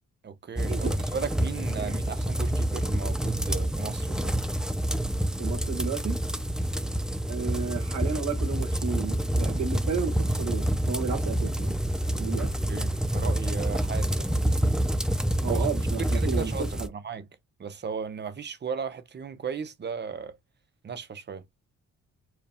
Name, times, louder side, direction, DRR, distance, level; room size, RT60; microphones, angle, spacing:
voice 1, 0.2-4.3 12.7-14.3 15.5-17.3 17.6-20.3 20.8-21.4, right 6 dB, 35° right, 0.8 m, -36 dB
sound 1, 0.6-16.9, right 1 dB, ahead, 0.5 m, -27 dB
voice 2, 5.4-6.2 7.3-11.7 12.2-12.5 15.4-16.9, right 5 dB, 65° right, 1.8 m, -32 dB
4.6 x 2.3 x 3.5 m
cardioid pair, 90°, 30 cm